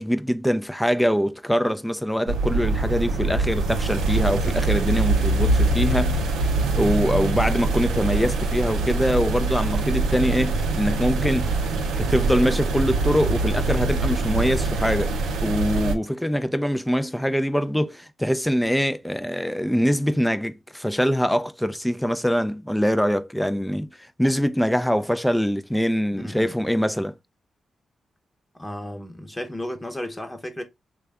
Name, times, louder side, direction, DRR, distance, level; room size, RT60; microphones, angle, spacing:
voice 1, 0.0-6.2 6.7-11.5 12.0-15.1 15.4-23.9 24.2-27.1, equal, 5° left, 0.4 m, -23 dB
sound 1, 2.3-15.9, right 3 dB, 90° right, 0.5 m, -23 dB
voice 2, 26.1-26.5 28.6-30.6, left 1 dB, 20° left, 0.9 m, -33 dB
3.3 x 2.3 x 3.4 m
supercardioid pair, 50°, 0 cm